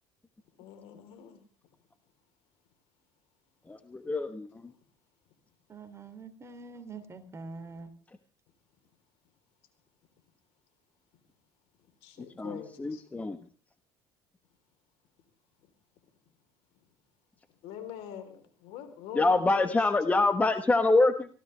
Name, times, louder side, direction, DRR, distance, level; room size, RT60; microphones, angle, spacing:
voice 1, 0.6-1.4 12.0-13.0 17.6-19.8, left 9 dB, 80° left, 3.8 m, -44 dB
voice 2, 3.7-4.5 12.4-13.4 19.1-21.3, left 2 dB, 15° left, 1.3 m, -25 dB
voice 3, 5.7-7.9, right 4 dB, 25° right, 2.9 m, -44 dB
24.0 x 16.0 x 3.4 m
cardioid pair, 110°, 10 cm